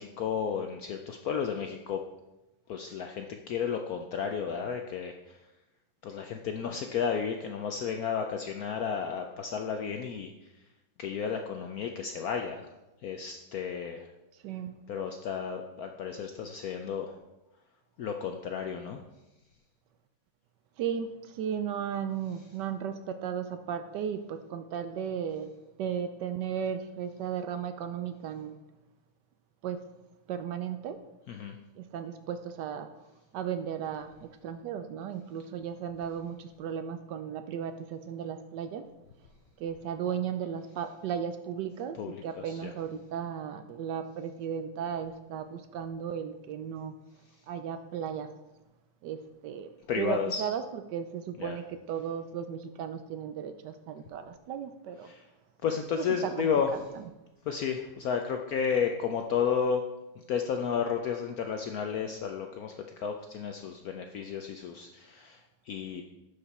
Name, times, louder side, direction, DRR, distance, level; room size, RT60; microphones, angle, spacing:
voice 1, 0.0-2.0 2.7-5.1 6.0-10.3 11.0-12.7 13.0-14.0 14.9-17.1 18.0-19.0 31.3-31.6 42.0-42.2 42.4-42.7 49.9-50.4 51.4-51.6 55.1-55.2 55.6-56.7 57.5-59.8 60.3-62.7 63.0-65.4 65.7-66.0, left 7 dB, 75° left, 4 dB, 0.8 m, -32 dB
voice 2, 20.8-25.5 25.8-28.5 29.6-29.8 30.3-31.0 31.8-32.9 33.3-38.8 39.6-46.9 47.5-48.3 49.0-49.7 50.0-55.1 56.0-56.1 56.4-57.0, right 8 dB, 75° right, 9 dB, 1.1 m, -35 dB
11.5 x 5.1 x 4.2 m, 0.99 s
omnidirectional pair, 2.1 m